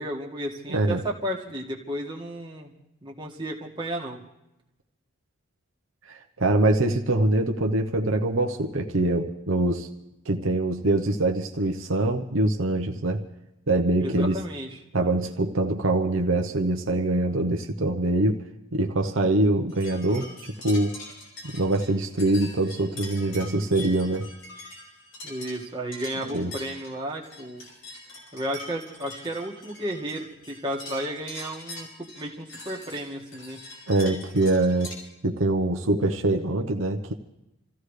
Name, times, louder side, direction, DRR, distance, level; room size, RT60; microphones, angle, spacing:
voice 1, 0.0-2.7 3.0-4.2 14.0-14.8 25.2-27.6 28.3-33.6, equal, 20° right, -2 dB, 1.9 m, -33 dB
voice 2, 0.7-1.0 6.0-9.9 10.3-13.2 13.7-14.4 14.9-18.4 18.7-20.3 20.6-20.9 21.4-24.3 26.2-26.5 33.9-34.9 35.2-37.1, right 2 dB, 70° right, 3 dB, 0.9 m, -24 dB
sound 1, 19.7-34.9, left 2 dB, 70° left, 5.5 m, -43 dB
27.5 x 15.5 x 3.3 m, 0.90 s
head